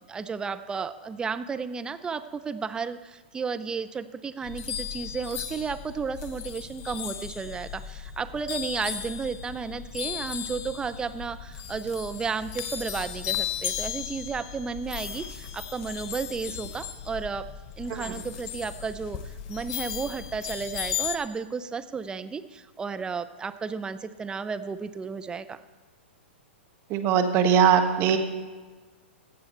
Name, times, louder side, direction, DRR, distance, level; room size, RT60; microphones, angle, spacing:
voice 1, 0.1-17.5 17.8-19.2 19.5-25.6, right 5 dB, 15° right, 12 dB, 0.5 m, -33 dB
sound 1, 4.4-21.2, left 9 dB, 45° left, 0.9 m, -36 dB
voice 2, 26.9-28.2, right 8 dB, 35° right, 7 dB, 1.2 m, -21 dB
15.0 x 7.7 x 4.4 m, 1.4 s
hypercardioid pair, 115°, 6 cm